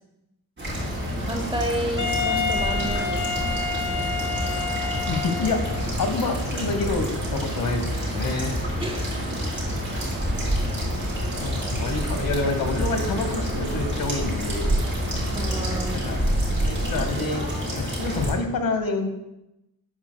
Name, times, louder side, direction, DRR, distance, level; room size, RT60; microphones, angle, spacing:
sound 1, 0.6-18.3, equal, 30° right, 3.6 m, -27 dB
voice 1, 1.2-3.2 8.8-9.2 15.3-16.0, right 1 dB, 15° right, 4 dB, 0.8 m, -31 dB
sound 2, 1.3-16.0, right 3 dB, 60° right, 1.0 m, -42 dB
Wind instrument woodwind instrument, 2.0-5.9, left 5 dB, 55° left, 0.8 m, -28 dB
voice 2, 5.1-5.6 6.0-8.5 11.4-14.8 15.9-16.3 16.7-17.4 17.7-19.1, left 3 dB, 70° left, 6 dB, 1.1 m, -28 dB
12.5 x 8.8 x 2.2 m, 0.90 s
wide cardioid pair, 150°, 36 cm